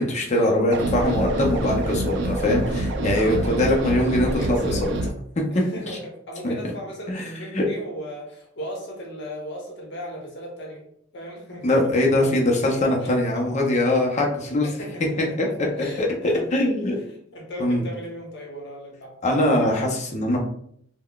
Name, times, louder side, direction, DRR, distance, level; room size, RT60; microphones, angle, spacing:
voice 1, 0.0-4.9 5.4-5.6 6.4-6.5 7.1-7.2 7.5-7.7 11.6-14.7 15.4-15.5 16.0-17.0 17.6-17.8 19.2-20.4, left 1 dB, 35° left, -1 dB, 0.6 m, -22 dB
sound 1, 0.7-5.1, right 1 dB, 60° right, 0.4 m, -26 dB
voice 2, 0.9-1.3 2.8-4.9 5.5-10.8 11.1-11.9 13.0-13.4 14.6-16.5 17.1-19.1, equal, 60° left, -2 dB, 0.9 m, -36 dB
3.7 x 2.2 x 2.3 m, 0.67 s
head